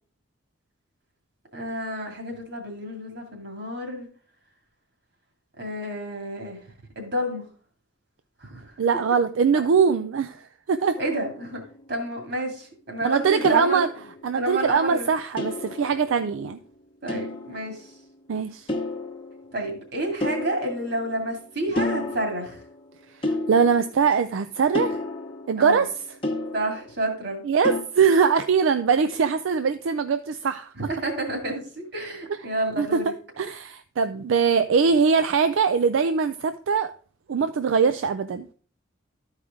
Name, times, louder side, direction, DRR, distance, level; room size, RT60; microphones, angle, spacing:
voice 1, 1.5-4.1 5.6-6.7 7.0-7.5 8.4-8.7 9.5-9.8 11.0-11.6 11.9-13.8 14.3-15.1 17.0-18.0 19.5-22.6 25.6-25.8 26.5-27.4 30.8-33.1, right 1 dB, 55° right, 3 dB, 2.2 m, -30 dB
voice 2, 8.8-11.0 13.0-13.9 14.2-16.6 18.3-18.7 23.2-25.0 25.5-25.9 27.5-30.7 32.8-33.0 33.4-36.9 37.3-38.5, right 6 dB, 80° right, 10 dB, 0.4 m, -22 dB
sound 1, 11.0-12.0 13.4-14.5 15.4-16.6 17.1-18.0 18.7-19.7 20.2-21.4 21.8-22.8 23.2-24.2 24.7-27.1 27.6-27.8, left 2 dB, 25° left, 1.0 m, -32 dB
12.5 x 4.9 x 3.6 m, 0.42 s
head